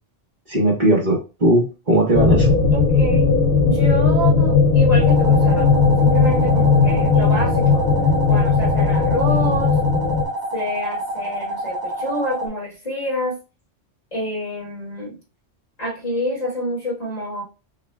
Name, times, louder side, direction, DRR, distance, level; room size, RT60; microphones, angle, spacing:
voice 1, 0.5-2.6, right 1 dB, 40° right, -2 dB, 1.1 m, -18 dB
sound 1, 2.1-10.2, left 4 dB, 55° left, 0.9 m, -17 dB
voice 2, 2.7-3.3 3.6-5.7 6.0-7.8 8.2-9.8 10.5-13.4 14.1-15.2 15.8-17.4, left 1 dB, 35° left, -4 dB, 1.5 m, -27 dB
sound 2, 5.0-12.5, right 1 dB, 70° right, 1.3 m, -28 dB
6.0 x 2.3 x 2.2 m, 0.31 s
omnidirectional pair, 1.3 m